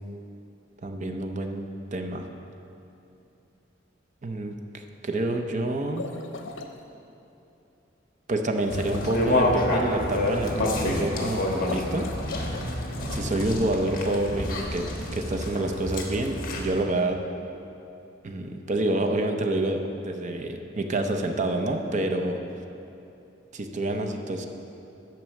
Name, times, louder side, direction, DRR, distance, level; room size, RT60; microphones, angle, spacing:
voice 1, 0.8-2.2 4.2-4.6 5.0-6.1 8.3-12.1 13.1-14.9 15.1-17.2 18.2-22.4 23.5-24.5, right 1 dB, 40° right, 4 dB, 0.6 m, -28 dB
sound 1, 5.8-6.7 8.6-9.4 11.6-12.7, left 3 dB, 85° left, 0.7 m, -38 dB
sound 2, 8.7-16.8, left 1 dB, 50° left, 1.3 m, -28 dB
9.0 x 6.0 x 6.3 m, 2.8 s
head